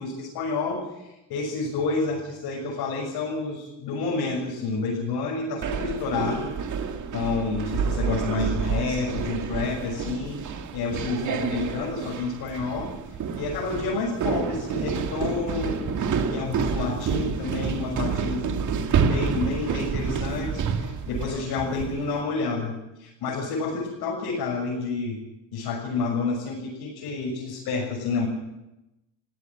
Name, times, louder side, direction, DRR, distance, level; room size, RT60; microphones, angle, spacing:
voice 1, 0.0-6.5 7.1-12.9 13.4-16.0 16.3-18.7 19.0-25.2 25.5-28.3, left 4 dB, 70° left, -3 dB, 6.9 m, -29 dB
sound 1, 5.6-22.1, right 6 dB, 50° right, 2.2 m, -29 dB
19.5 x 16.5 x 9.0 m, 0.95 s
cardioid pair, 110°, 39 cm